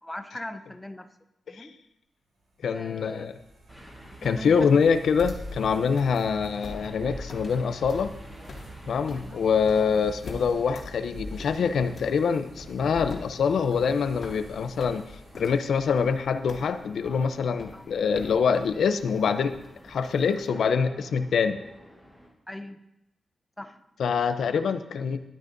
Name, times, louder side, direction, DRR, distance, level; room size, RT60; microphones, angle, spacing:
voice 1, 0.0-1.1 1.5-1.8 2.7-3.3 4.2-4.8 9.1-9.4 17.7-17.9 22.5-22.8 23.6-23.8 24.7-24.8, left 1 dB, 10° left, 7 dB, 0.6 m, -40 dB
voice 2, 2.6-3.4 4.2-8.1 8.9-15.0 15.4-19.6 19.8-21.6 24.0-25.2, left 6 dB, 85° left, 10 dB, 0.5 m, -25 dB
sound 1, 2.6-16.0, right 1 dB, 90° right, 3.6 m, -45 dB
sound 2, 3.7-22.3, equal, 10° right, 4.2 m, -51 dB
sound 3, 5.0-20.5, left 2 dB, 45° left, 2.1 m, -46 dB
13.0 x 12.0 x 2.6 m, 0.87 s
wide cardioid pair, 170°, 0 cm